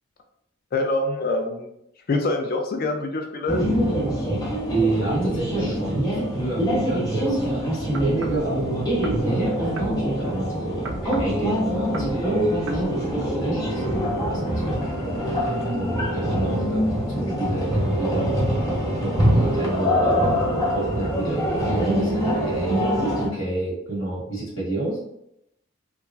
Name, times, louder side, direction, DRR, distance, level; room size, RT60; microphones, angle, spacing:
voice 1, 0.7-1.7 2.1-3.6, left 2 dB, 50° left, 3 dB, 0.4 m, -25 dB
sound 1, 3.5-23.3, equal, 20° left, 0.8 m, -24 dB
voice 2, 4.6-8.9 9.2-18.3 19.0-20.3 20.7-22.8 23.2-25.0, right 2 dB, 85° left, -8 dB, 1.4 m, -29 dB
sound 2, 7.9-8.5 9.0-9.3 9.8-10.0 10.8-11.4 11.9-12.2 12.7-12.9, right 2 dB, 85° right, 0.4 m, -34 dB
2.9 x 2.4 x 2.3 m, 0.79 s
head